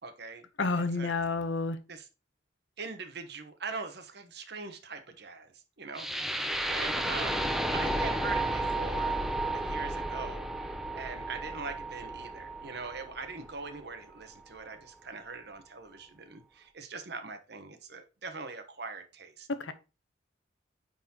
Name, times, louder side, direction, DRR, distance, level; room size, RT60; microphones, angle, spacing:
voice 1, 0.0-0.5 0.8-1.2 1.9-2.1 2.8-9.2 9.5-19.7, right 4 dB, 60° right, 1.1 m, -42 dB
voice 2, 0.6-1.8 19.5-19.7, left 3 dB, 90° left, 0.8 m, -30 dB
sound 1, 5.9-14.0, right 1 dB, ahead, 0.5 m, -33 dB
9.3 x 4.1 x 2.9 m
head